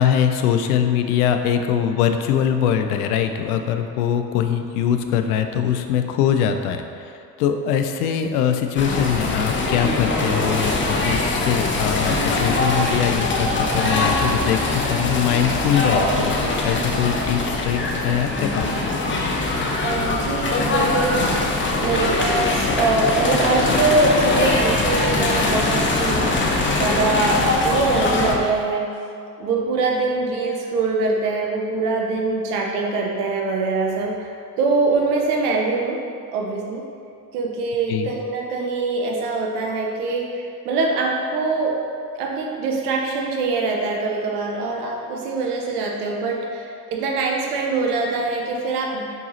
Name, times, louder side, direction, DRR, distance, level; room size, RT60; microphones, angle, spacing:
voice 1, 0.0-16.4 16.6-18.7 37.9-38.1, left 8 dB, 65° left, 7 dB, 0.6 m, -22 dB
sound 1, 8.8-28.4, left 2 dB, 25° left, 0.9 m, -22 dB
voice 2, 19.8-21.3 21.8-26.3 26.8-28.9 29.4-34.3 34.6-36.0 36.3-36.8 37.3-41.8 42.2-49.2, right 3 dB, 70° right, 0 dB, 1.1 m, -23 dB
7.9 x 4.7 x 2.8 m, 2.4 s
figure-of-eight pair, 60°, 48 cm